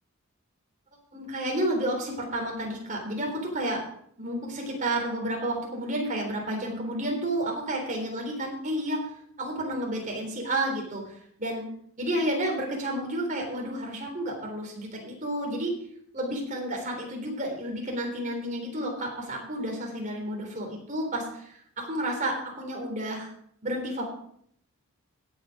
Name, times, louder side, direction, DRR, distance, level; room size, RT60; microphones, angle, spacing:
voice 1, 1.1-3.8 4.2-9.0 9.4-11.7 12.0-15.7 16.1-23.3 23.6-24.0, right 1 dB, 35° right, 0 dB, 3.8 m, -31 dB
16.5 x 8.2 x 5.0 m, 0.66 s
head